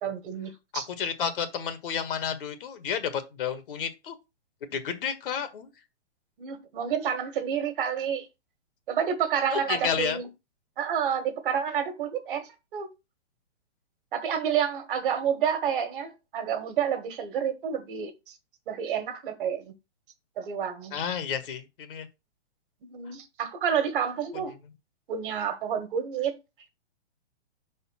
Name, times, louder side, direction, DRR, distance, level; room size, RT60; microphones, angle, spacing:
voice 1, 0.0-0.8 6.4-8.3 8.9-10.3 10.8-12.9 14.1-18.1 18.7-19.7 20.4-21.0 22.8-24.5 25.1-26.4, right 8 dB, 50° right, 1.6 m, -29 dB
voice 2, 0.7-4.1 4.7-5.7 9.5-10.2 20.9-22.1, left 7 dB, 50° left, 1.6 m, -31 dB
5.3 x 4.3 x 5.6 m
hypercardioid pair, 150°, 34 cm